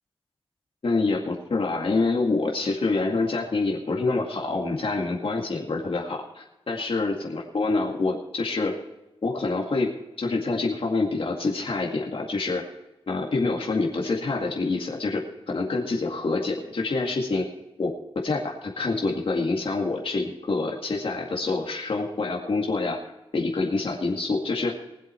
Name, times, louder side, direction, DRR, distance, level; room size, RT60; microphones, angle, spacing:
voice 1, 0.8-8.8 9.2-12.6 13.1-15.2 15.5-17.5 17.8-17.9 18.2-23.0 23.3-24.8, left 3 dB, 65° left, -1 dB, 2.1 m, -26 dB
20.5 x 7.8 x 4.4 m, 1.0 s
wide cardioid pair, 75°, 10 cm